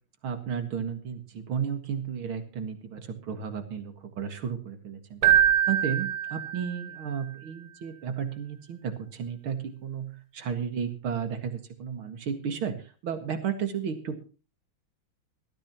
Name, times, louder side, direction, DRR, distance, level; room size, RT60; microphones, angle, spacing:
voice 1, 0.2-5.2 5.7-14.2, right 7 dB, 85° right, 7 dB, 2.7 m, -33 dB
Keyboard (musical), 5.2-7.0, right 10 dB, 55° right, 1.7 m, -24 dB
19.5 x 13.5 x 3.0 m, 0.35 s
omnidirectional pair, 2.3 m